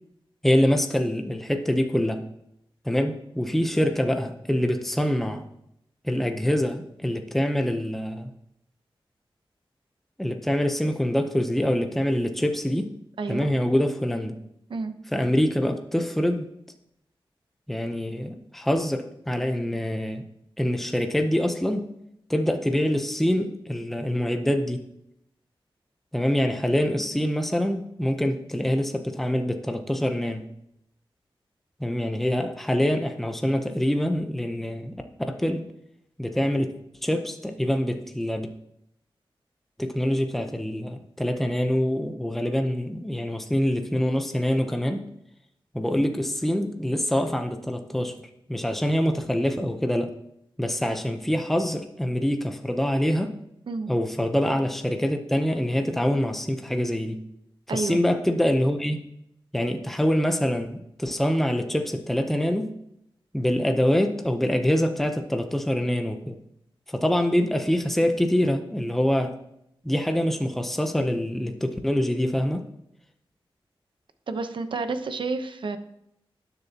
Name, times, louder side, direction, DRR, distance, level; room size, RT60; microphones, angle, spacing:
voice 1, 0.4-2.2 2.8-5.4 6.0-8.3 10.2-12.9 13.3-14.3 15.1-16.5 17.7-20.2 20.6-21.9 22.3-24.9 26.1-30.5 31.8-35.0 35.3-35.7 36.2-36.7 37.0-38.5 39.8-45.1 45.7-48.2 48.5-50.2 50.6-53.3 53.9-57.2 57.7-59.0 59.5-62.7 63.3-66.4 66.9-69.4 69.8-72.6, equal, 5° left, 5 dB, 0.7 m, -25 dB
voice 2, 13.2-13.5 14.7-14.9 53.7-53.9 57.7-58.0 74.3-75.8, right 3 dB, 60° right, 9 dB, 0.8 m, -30 dB
19.5 x 6.8 x 2.9 m, 0.79 s
wide cardioid pair, 120°, 9 cm